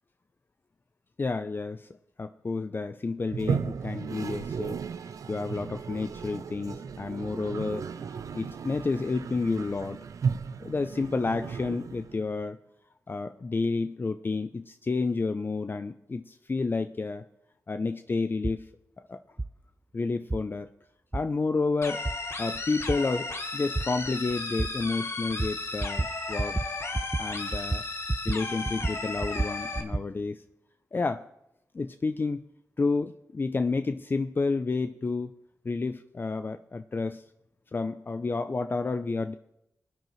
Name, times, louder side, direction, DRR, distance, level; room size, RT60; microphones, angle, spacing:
voice 1, 1.2-1.9 2.2-4.8 5.0-7.9 8.3-10.0 10.6-12.6 13.1-17.2 17.7-18.7 19.0-19.2 19.9-20.7 21.1-22.0 22.4-23.3 23.5-26.9 27.2-27.8 28.2-30.4 30.9-31.3 31.7-32.4 32.8-35.3 35.6-37.2 37.7-39.3, left 3 dB, 35° left, 9 dB, 0.5 m, -30 dB
Toilet flush, 3.3-12.4, right 6 dB, 75° right, 0.5 m, -35 dB
sound 1, 18.4-18.6 19.4-19.5 20.3-20.4 21.1-21.2 22.1-22.2 22.9-23.0 23.8-23.9 24.6-24.7 25.4-25.5 25.8-26.1 26.4-26.7 26.9-27.2 27.5-28.4 28.7-30.1, right 2 dB, 15° right, 0.3 m, -29 dB
sound 2, 21.8-29.8, left 3 dB, 50° left, 1.5 m, -35 dB
19.5 x 9.1 x 3.1 m, 0.82 s
cardioid pair, 65°, 6 cm